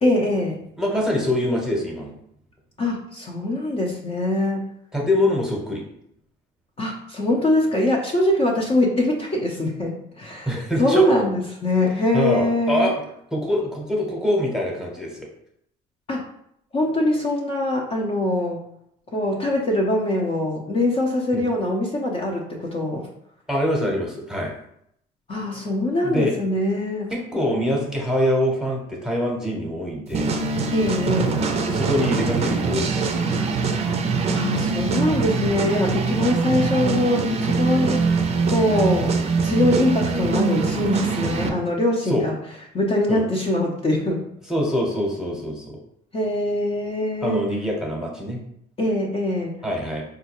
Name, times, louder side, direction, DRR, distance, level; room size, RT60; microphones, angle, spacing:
voice 1, 0.0-0.6 2.8-4.6 6.8-10.5 10.8-12.9 16.1-16.2 16.7-18.6 19.1-23.1 25.3-27.1 30.7-31.4 34.3-39.1 39.4-42.3 42.7-44.3 46.1-47.4 48.8-49.6, left 1 dB, 35° left, -1 dB, 0.7 m, -23 dB
voice 2, 0.8-2.2 4.9-5.8 10.4-11.1 12.1-12.9 13.3-15.3 21.3-21.4 23.5-24.5 26.0-26.3 27.1-30.3 31.7-33.7 41.4-41.5 42.0-42.3 43.1-43.2 44.5-45.8 47.2-48.4 49.6-50.0, left 1 dB, 5° right, -2 dB, 0.9 m, -24 dB
sound 1, 30.1-41.5, right 4 dB, 40° right, 0.5 m, -23 dB
4.2 x 2.4 x 2.9 m, 0.74 s
cardioid pair, 110°, 17 cm